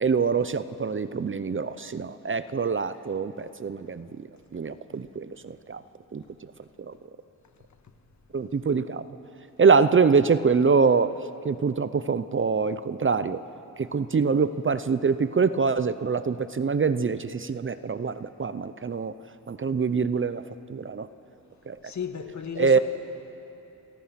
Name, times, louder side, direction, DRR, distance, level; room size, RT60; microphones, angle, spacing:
voice 1, 0.0-4.3 4.5-5.8 6.1-6.5 6.8-6.9 8.3-9.0 9.6-11.2 11.4-13.4 13.8-19.1 19.5-20.4 20.7-21.1 21.7-21.8 22.6-22.8, right 5 dB, 35° right, 0.7 m, -24 dB
voice 2, 21.8-22.8, left 7 dB, 50° left, 1.9 m, -34 dB
28.5 x 23.0 x 5.9 m
cardioid pair, 85°, 36 cm